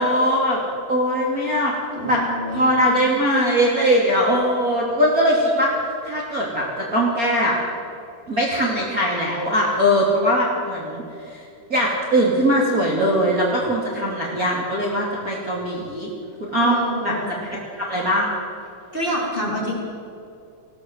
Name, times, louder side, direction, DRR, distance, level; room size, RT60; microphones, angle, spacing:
voice 1, 0.0-1.7 2.0-2.2 2.5-5.7 6.0-7.6 8.3-11.0 11.3-11.4 11.7-16.1 16.4-16.7 17.0-17.1 17.4-18.3, equal, 30° right, -4 dB, 2.9 m, -21 dB
voice 2, 1.9-3.0 16.6-17.4 18.9-19.7, left 1 dB, 15° left, -4 dB, 4.3 m, -27 dB
20.0 x 16.5 x 8.0 m, 2.6 s
omnidirectional pair, 3.6 m